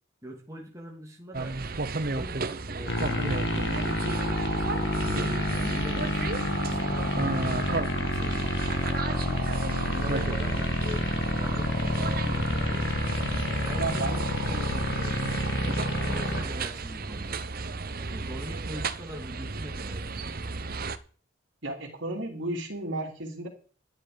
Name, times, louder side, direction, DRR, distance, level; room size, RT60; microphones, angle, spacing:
voice 1, 0.2-1.6 2.1-5.1 5.4-7.4 7.8-9.2 9.8-13.0 13.6-17.4 18.0-20.4, equal, 15° right, 0 dB, 2.6 m, -42 dB
sound 1, 1.3-21.0, right 3 dB, 45° right, 0.9 m, -33 dB
sound 2, 2.9-16.4, left 1 dB, 55° left, 2.1 m, -29 dB
voice 2, 13.8-14.8 21.6-23.5, right 2 dB, 70° right, -3 dB, 3.3 m, -34 dB
12.5 x 10.5 x 5.2 m, 0.41 s
head